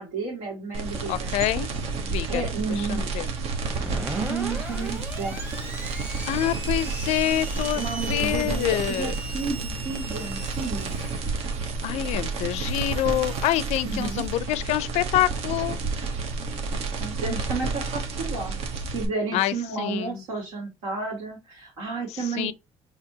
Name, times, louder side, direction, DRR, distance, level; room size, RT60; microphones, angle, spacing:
voice 1, 0.0-1.4 2.3-3.0 4.1-5.4 7.7-11.1 13.8-14.3 16.4-16.6 17.0-18.6 18.9-22.5, right 3 dB, 85° right, 2.4 m, -32 dB
sound 1, 0.7-19.0, right 4 dB, 70° right, 1.0 m, -30 dB
voice 2, 1.1-1.7 2.0-3.3 6.3-9.1 11.8-15.8 19.3-20.2 22.1-22.5, left 13 dB, 80° left, 0.4 m, -27 dB
Screech, 3.7-14.2, right 1 dB, 15° right, 1.2 m, -39 dB
4.5 x 3.3 x 2.8 m
cardioid pair, 115°, 11 cm